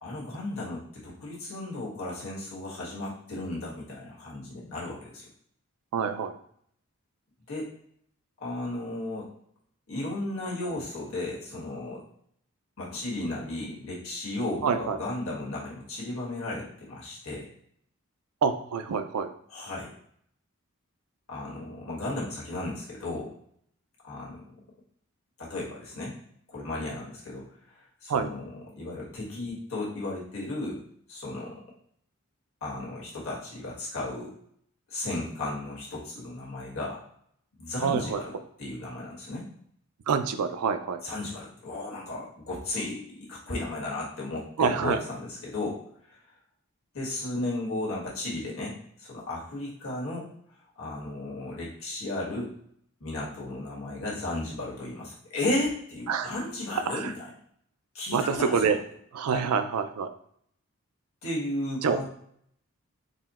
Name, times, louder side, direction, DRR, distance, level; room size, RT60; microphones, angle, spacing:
voice 1, 0.0-5.3 7.5-7.7 8.4-9.3 9.9-12.0 12.8-17.5 19.5-19.9 21.3-23.3 24.0-24.5 25.4-26.1 26.5-30.8 31.1-31.6 32.6-34.3 34.9-37.0 37.6-39.4 41.0-45.8 46.1-46.2 46.9-50.3 50.8-52.5 53.0-57.2 57.9-58.7 59.3-59.4 61.2-62.0, left 2 dB, 70° left, -5 dB, 1.4 m, -34 dB
voice 2, 5.9-6.4 14.6-15.0 18.4-19.3 28.1-28.3 37.8-38.2 40.1-41.0 44.6-45.0 56.1-56.3 56.9-57.1 58.1-58.8 59.1-60.1 61.8-62.0, right 6 dB, 85° right, 9 dB, 0.4 m, -26 dB
4.1 x 2.2 x 4.1 m, 0.65 s
head